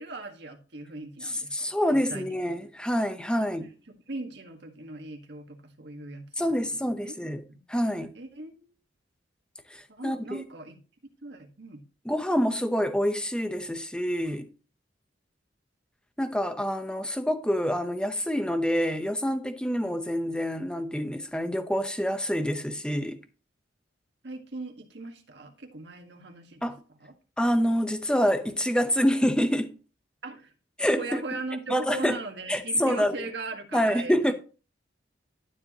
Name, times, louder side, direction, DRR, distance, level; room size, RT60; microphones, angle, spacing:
voice 1, 0.0-2.5 3.4-6.5 7.0-7.1 7.5-7.6 8.1-8.7 9.9-10.8 11.2-11.8 24.2-26.7 27.0-27.1 30.2-30.5 31.0-34.3, right 3 dB, 60° right, 1.6 m, -39 dB
voice 2, 1.2-3.7 6.4-7.4 7.7-8.1 9.7-10.4 12.0-14.5 16.2-23.2 26.6-26.8 27.4-29.8 30.8-31.2 31.7-32.2 32.5-33.1 33.7-34.3, equal, 5° left, 0.8 m, -27 dB
12.0 x 7.4 x 3.0 m
head